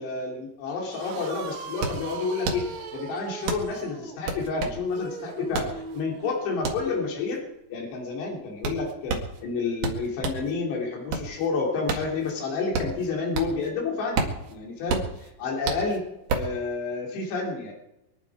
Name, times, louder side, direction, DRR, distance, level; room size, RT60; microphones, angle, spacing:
voice 1, 0.0-7.4 7.7-17.7, left 4 dB, 60° left, -1 dB, 5.2 m, -30 dB
sound 1, 0.9-1.0 1.2-10.5 10.9-13.7 14.0-16.6, right 4 dB, 55° right, 3.2 m, -31 dB
sound 2, 0.9-6.4, right 5 dB, 90° right, 1.5 m, -40 dB
24.5 x 11.0 x 4.9 m, 0.90 s
omnidirectional pair, 5.7 m